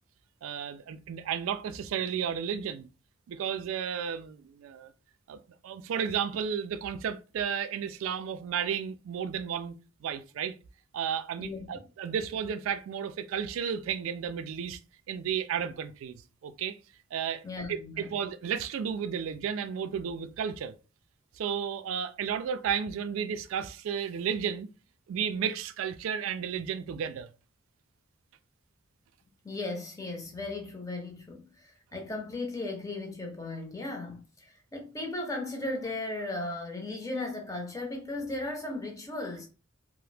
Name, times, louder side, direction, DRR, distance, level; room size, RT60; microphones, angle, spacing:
voice 1, 0.4-2.9 3.3-4.9 5.3-10.5 10.9-14.8 15.1-16.8 17.1-20.7 21.4-24.7 25.1-27.3, right 7 dB, 80° right, 0.3 m, -33 dB
voice 2, 11.4-11.8 17.4-18.2 29.4-39.5, left 2 dB, 15° left, 0.6 m, -36 dB
2.8 x 2.0 x 3.2 m
head